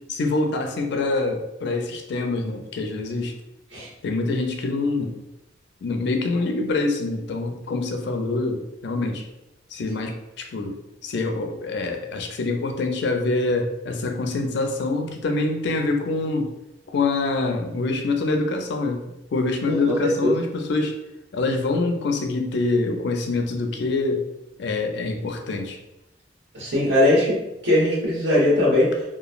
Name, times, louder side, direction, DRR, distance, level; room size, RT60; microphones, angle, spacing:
voice 1, 0.1-3.3 4.0-5.2 5.8-9.3 9.7-10.8 11.0-16.5 16.9-19.0 19.3-21.0 21.3-24.2 24.6-25.8, left 3 dB, 65° left, 4 dB, 0.4 m, -25 dB
voice 2, 19.6-20.3 26.5-27.4 27.6-29.1, left 1 dB, 75° right, -5 dB, 1.1 m, -20 dB
2.9 x 2.3 x 2.4 m, 0.92 s
head